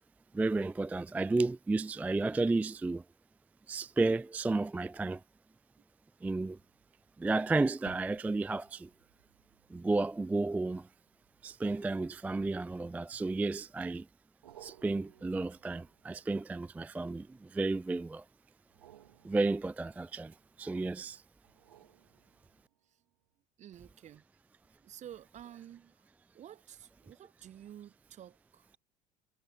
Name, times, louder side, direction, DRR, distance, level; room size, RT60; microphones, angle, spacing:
voice 1, 0.3-3.0 3.7-5.2 6.2-6.6 7.2-8.9 9.7-10.9 11.4-14.1 14.6-18.2 19.2-21.2, right 3 dB, 5° right, 0.3 m, -32 dB
sound 1, 6.7-6.9 7.8-12.4 13.1-13.7 14.4-17.4 18.6-20.7 21.4-22.9 23.3-23.4, right 11 dB, 75° right, 2.2 m, -60 dB
voice 2, 23.6-24.2 24.8-25.9 26.3-28.7, right 10 dB, 35° right, 0.8 m, -51 dB
figure-of-eight pair, 60°, 20 cm